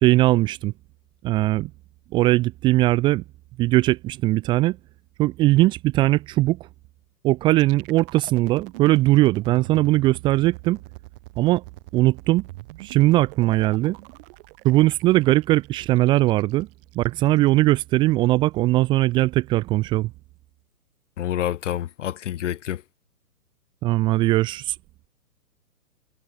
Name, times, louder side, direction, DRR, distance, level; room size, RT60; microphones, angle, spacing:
voice 1, 0.0-0.7 1.2-1.7 2.1-3.2 3.6-4.8 5.2-6.6 7.2-10.8 11.4-11.6 11.9-12.4 12.8-14.0 14.6-16.7 17.0-20.1 23.8-24.8, right 18 dB, 10° right, 0.6 m, -20 dB
sound 1, 7.5-17.5, right 20 dB, 35° right, 4.1 m, -43 dB
voice 2, 21.2-22.8, left 11 dB, 50° left, 1.0 m, -28 dB
hypercardioid pair, 140°, 46 cm